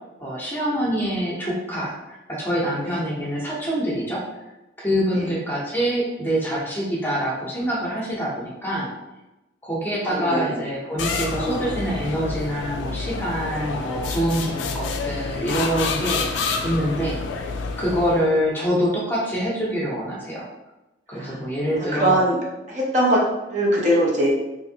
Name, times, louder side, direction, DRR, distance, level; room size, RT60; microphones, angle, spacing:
voice 1, 0.2-4.2 4.8-8.9 9.6-17.5 17.8-20.5 21.1-22.2, equal, 10° left, -5 dB, 0.7 m, -25 dB
voice 2, 10.0-10.6 11.3-11.8 21.1-21.4 21.8-22.4 22.7-23.2 23.5-24.3, right 1 dB, 40° right, -3 dB, 0.6 m, -22 dB
sound 1, 11.0-18.4, left 4 dB, 85° left, 0.3 m, -28 dB
3.0 x 2.5 x 2.7 m, 1.0 s
head